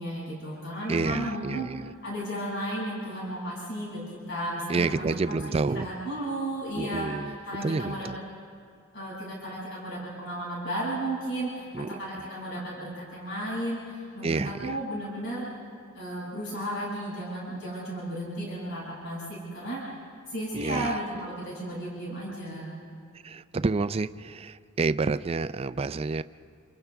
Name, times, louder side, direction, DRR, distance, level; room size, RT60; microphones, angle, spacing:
voice 1, 0.0-1.7 2.0-7.1 7.5-8.1 8.9-15.5 15.9-19.8 20.2-22.7, right 1 dB, 65° left, -7 dB, 7.1 m, -34 dB
voice 2, 0.9-1.9 4.7-5.9 6.8-8.2 11.7-12.0 14.2-14.8 20.5-21.0 23.2-26.2, right 3 dB, 30° right, 12 dB, 0.4 m, -29 dB
28.5 x 27.5 x 3.6 m, 2.2 s
head